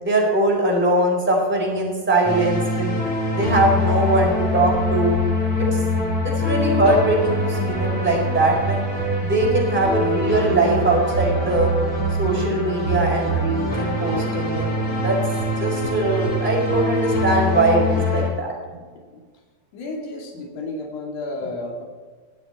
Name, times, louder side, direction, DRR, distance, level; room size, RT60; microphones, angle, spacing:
voice 1, 0.0-3.0 3.3-5.2 5.6-5.8 6.2-8.8 9.2-11.7 12.2-15.2 15.6-18.5, right 2 dB, 5° right, -3 dB, 3.8 m, -21 dB
sound 1, 2.2-18.3, left 1 dB, 35° left, 4.8 m, -23 dB
voice 2, 18.7-19.2 19.7-21.8, left 2 dB, 60° left, -1 dB, 3.7 m, -32 dB
21.5 x 7.9 x 4.4 m, 1.5 s
omnidirectional pair, 4.2 m